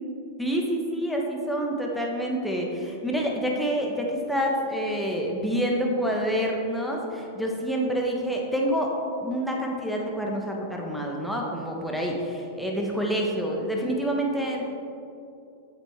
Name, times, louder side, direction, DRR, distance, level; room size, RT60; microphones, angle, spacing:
voice 1, 0.4-8.9 9.2-14.6, equal, ahead, -1 dB, 1.3 m, -27 dB
8.0 x 7.3 x 3.6 m, 2.7 s
figure-of-eight pair, 100°, 0 cm